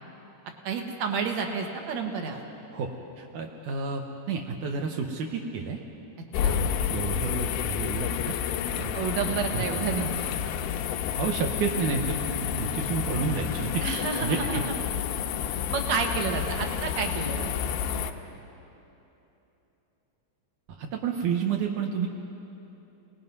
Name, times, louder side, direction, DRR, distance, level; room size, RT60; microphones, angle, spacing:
voice 1, 0.6-2.4 6.4-6.6 8.9-10.3 13.8-14.7 15.7-17.5, right 5 dB, 55° right, 3 dB, 2.1 m, -30 dB
voice 2, 3.2-5.8 6.4-8.3 8.8-9.0 9.5-9.8 11.1-13.8 14.2-14.6 20.8-22.1, right 5 dB, 75° right, 2 dB, 1.8 m, -30 dB
sound 1, 6.3-18.1, left 9 dB, 85° left, 3.0 m, -30 dB
29.0 x 19.0 x 5.4 m, 3.0 s
omnidirectional pair, 5.1 m